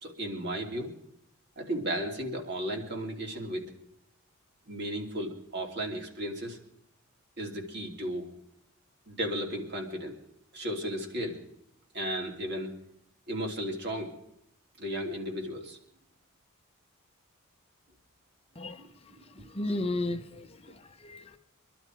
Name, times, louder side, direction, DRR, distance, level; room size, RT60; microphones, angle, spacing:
voice 1, 0.0-0.9 1.6-3.6 4.7-6.6 7.4-8.3 9.1-10.2 10.5-11.4 11.9-12.7 13.3-14.1 14.8-15.8 18.8-18.9 19.2-19.5, equal, 55° right, 1 dB, 3.3 m, -34 dB
voice 2, 19.4-21.4, left 2 dB, 30° left, 7 dB, 0.8 m, -34 dB
24.5 x 12.0 x 4.7 m, 0.79 s
head